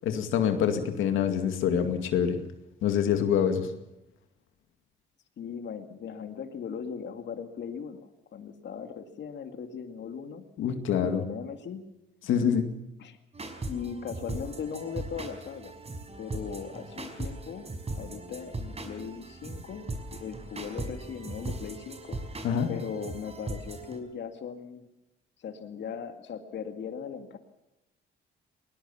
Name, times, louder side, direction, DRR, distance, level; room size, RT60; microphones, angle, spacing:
voice 1, 0.0-2.4 2.8-3.7 10.6-11.2 12.3-12.7 22.4-22.7, left 8 dB, 85° left, 6 dB, 2.2 m, -25 dB
voice 2, 5.4-10.4 11.0-11.8 13.0-13.2 13.7-15.7 16.2-17.7 17.9-19.8 20.1-22.2 22.7-24.9 25.4-27.4, left 7 dB, 65° left, 7 dB, 2.2 m, -38 dB
sound 1, 13.3-24.0, right 2 dB, 30° right, 5.3 m, -39 dB
21.0 x 19.5 x 7.1 m, 0.92 s
cardioid pair, 90°, 20 cm